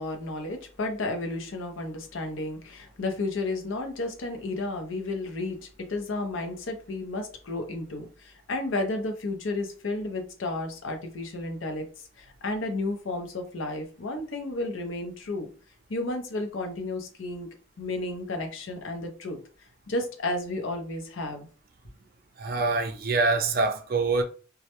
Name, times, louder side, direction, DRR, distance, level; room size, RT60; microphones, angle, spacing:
voice 1, 0.0-11.9 12.2-15.5 15.9-17.5 17.8-19.4 19.9-21.5, left 2 dB, 80° left, 0.6 m, -32 dB
voice 2, 22.4-24.2, right 3 dB, 50° right, 0.4 m, -25 dB
2.3 x 2.1 x 2.8 m
head